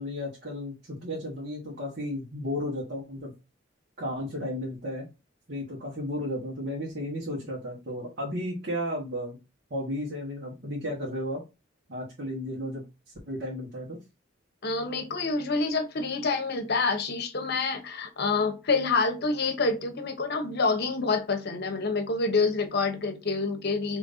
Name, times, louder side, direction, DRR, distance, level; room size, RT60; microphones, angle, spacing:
voice 1, 0.0-3.3 4.0-5.1 5.5-9.4 9.7-11.4 11.9-14.0, left 1 dB, 55° right, 1.5 m, -34 dB
voice 2, 14.6-24.0, left 3 dB, 55° left, 0.9 m, -27 dB
5.2 x 3.1 x 2.6 m
head